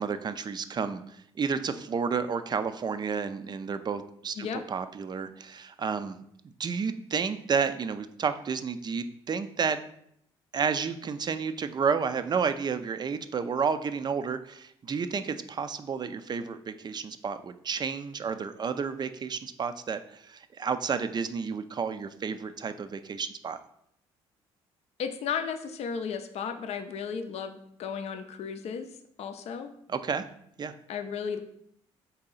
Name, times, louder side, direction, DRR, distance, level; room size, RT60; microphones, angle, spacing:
voice 1, 0.0-6.2 6.4-9.8 10.5-23.6 29.9-30.2 30.6-30.7, right 6 dB, 35° right, 10 dB, 0.4 m, -31 dB
voice 2, 25.0-28.9 29.2-29.7 30.9-31.4, left 6 dB, 55° left, 7 dB, 0.4 m, -34 dB
3.9 x 2.8 x 3.8 m, 0.71 s
supercardioid pair, 60°, 13 cm